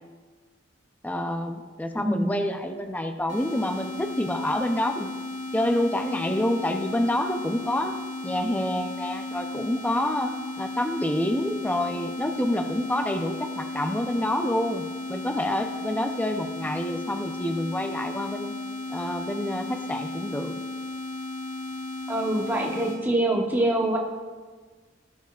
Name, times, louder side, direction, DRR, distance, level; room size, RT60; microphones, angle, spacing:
voice 1, 1.0-5.1 5.5-8.0 8.2-18.5 18.9-20.5, left 1 dB, 10° left, 5 dB, 0.5 m, -28 dB
voice 2, 2.0-2.3 22.1-24.0, right 1 dB, 10° right, -1 dB, 0.9 m, -24 dB
sound 1, 3.3-23.0, left 2 dB, 40° left, 2.0 m, -35 dB
17.0 x 7.0 x 2.4 m, 1.4 s
head